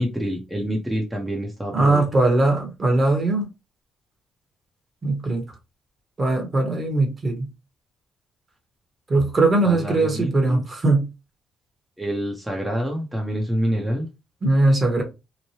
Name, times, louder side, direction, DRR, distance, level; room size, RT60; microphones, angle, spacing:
voice 1, 0.0-2.0 9.6-10.6 12.0-14.1, equal, 5° right, 0.7 m, -27 dB
voice 2, 1.7-3.5 5.0-5.4 6.2-7.5 9.1-11.1 14.4-15.0, right 2 dB, 35° right, 1.1 m, -20 dB
3.0 x 2.2 x 2.8 m
cardioid pair, 90°, 0 cm